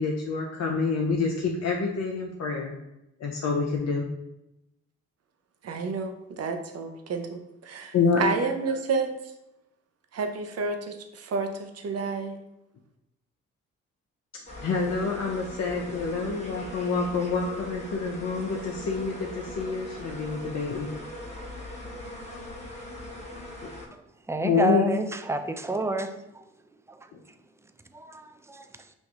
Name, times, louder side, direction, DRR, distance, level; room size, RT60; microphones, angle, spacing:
voice 1, 0.0-2.8 3.2-4.1 7.9-8.2 14.3-20.9 24.4-25.0, left 4 dB, 55° left, -1 dB, 0.7 m, -27 dB
voice 2, 5.6-9.1 10.1-12.4, right 4 dB, 50° right, 5 dB, 0.7 m, -30 dB
sound 1, 14.5-23.9, left 1 dB, 20° left, 1.4 m, -40 dB
voice 3, 24.3-26.1 27.9-28.6, right 2 dB, 10° right, 8 dB, 0.4 m, -29 dB
5.9 x 2.6 x 2.4 m, 0.90 s
supercardioid pair, 50°, 33 cm